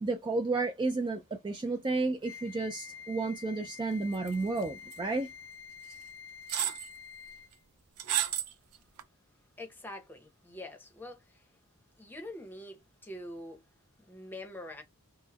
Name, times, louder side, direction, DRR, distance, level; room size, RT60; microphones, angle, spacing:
voice 1, 0.0-5.3, right 3 dB, 20° right, 0.3 m, -32 dB
Wind instrument woodwind instrument, 2.2-7.6, left 7 dB, 60° left, 0.5 m, -48 dB
sound 1, 4.3-4.6 4.9-5.0 5.9-6.0 6.5-6.9 8.0-8.5 9.0-9.1, right 10 dB, 90° right, 0.5 m, -31 dB
voice 2, 9.6-11.5 12.0-13.6 14.1-14.8, left 1 dB, 10° left, 0.7 m, -45 dB
3.6 x 2.1 x 2.8 m
head